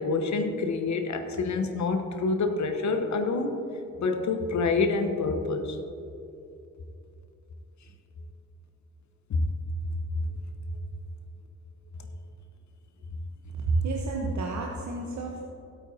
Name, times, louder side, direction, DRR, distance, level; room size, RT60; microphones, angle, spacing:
voice 1, 0.0-3.6 4.0-5.8 9.3-9.5 10.2-10.3, left 3 dB, 45° left, 6 dB, 1.1 m, -27 dB
voice 2, 13.5-15.4, right 3 dB, 45° right, -1 dB, 1.2 m, -29 dB
17.0 x 8.4 x 2.8 m, 2.7 s
figure-of-eight pair, 40°, 41 cm